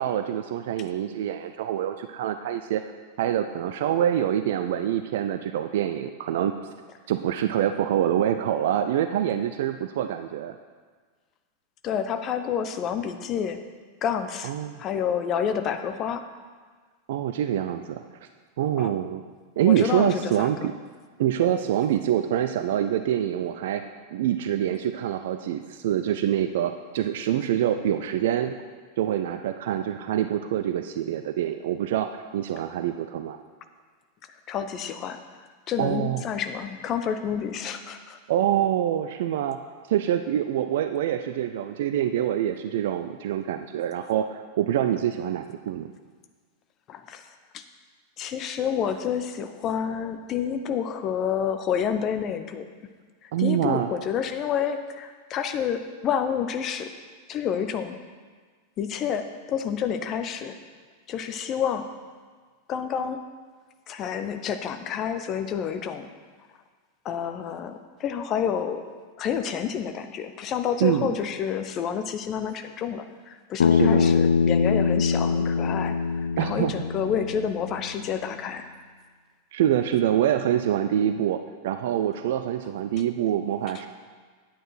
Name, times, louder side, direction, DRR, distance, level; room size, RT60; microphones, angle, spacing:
voice 1, 0.0-2.8 3.2-6.5 7.1-10.6 14.4-14.7 17.1-18.0 18.6-19.2 19.6-20.7 21.2-28.6 29.0-33.4 35.8-36.2 38.3-39.6 39.9-45.9 53.3-53.9 70.8-71.1 73.7-74.2 76.4-76.7 79.5-83.9, right 11 dB, 55° right, 8 dB, 0.4 m, -25 dB
voice 2, 11.8-13.6 14.0-14.5 14.8-16.2 18.8-18.9 19.6-20.6 34.5-35.2 35.7-38.2 46.9-47.3 47.5-47.6 48.2-52.6 53.2-56.9 57.3-58.0 58.8-60.5 61.1-61.9 62.7-63.2 63.9-66.1 67.0-68.8 69.2-76.0 76.4-78.6, left 8 dB, 35° left, 8 dB, 0.8 m, -29 dB
Bass guitar, 73.6-77.9, left 5 dB, 65° left, 0.3 m, -23 dB
10.0 x 9.1 x 4.5 m, 1.5 s
figure-of-eight pair, 90°, 0 cm